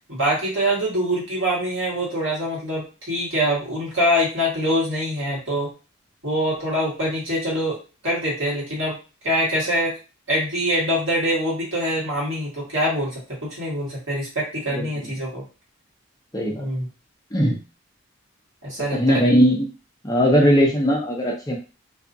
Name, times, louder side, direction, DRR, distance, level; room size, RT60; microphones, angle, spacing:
voice 1, 0.1-5.7 6.2-7.8 8.0-9.0 9.2-9.9 10.3-15.4 16.5-16.9 18.6-19.2, equal, 65° right, -5 dB, 1.6 m, -24 dB
voice 2, 14.8-15.1 16.3-16.7 17.3-17.6 18.9-19.7 20.0-21.6, equal, 15° left, -1 dB, 0.5 m, -19 dB
2.7 x 2.4 x 2.5 m, 0.33 s
head